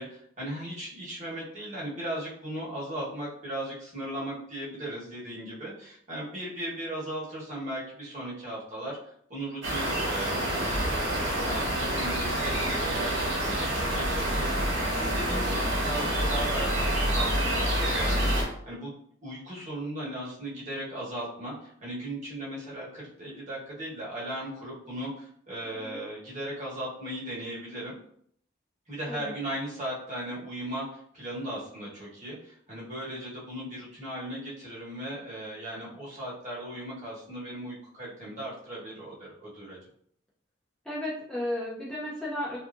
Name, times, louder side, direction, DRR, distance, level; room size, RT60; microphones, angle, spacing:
voice 1, 0.0-18.9 19.2-28.0 28.9-39.8, right 1 dB, 40° right, -6 dB, 1.1 m, -37 dB
sound 1, 9.6-18.4, right 1 dB, 65° right, 1.0 m, -27 dB
voice 2, 40.8-42.6, left 1 dB, 5° left, -7 dB, 0.5 m, -34 dB
2.7 x 2.4 x 2.4 m, 0.64 s
head